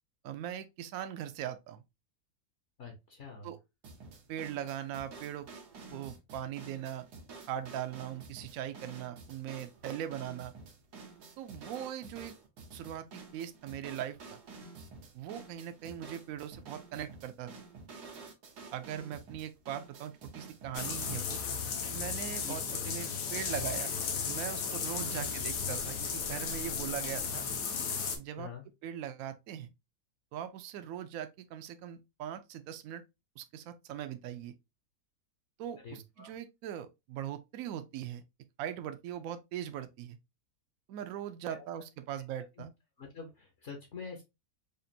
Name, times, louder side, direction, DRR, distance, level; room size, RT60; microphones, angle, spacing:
voice 1, 0.2-1.8 3.4-3.6 4.3-5.5 5.9-7.1 7.5-10.5 11.4-12.3 12.7-14.4 15.1-17.5 18.7-21.4 21.9-23.9 24.3-27.4 28.2-28.5 28.8-29.7 30.3-33.0 33.4-34.5 35.6-38.2 38.6-40.2 40.9-42.7, right 10 dB, 70° right, 0.9 m, -40 dB
voice 2, 2.8-3.5 22.4-22.5 23.2-23.4 25.1-25.3 28.4-28.6 35.8-36.3 41.5-41.6 43.0-44.2, left 5 dB, 55° left, 1.1 m, -46 dB
sound 1, 3.8-21.3, right 4 dB, 90° right, 1.6 m, -50 dB
sound 2, 20.8-28.2, left 6 dB, 80° left, 1.4 m, -35 dB
5.1 x 2.5 x 2.6 m
omnidirectional pair, 1.7 m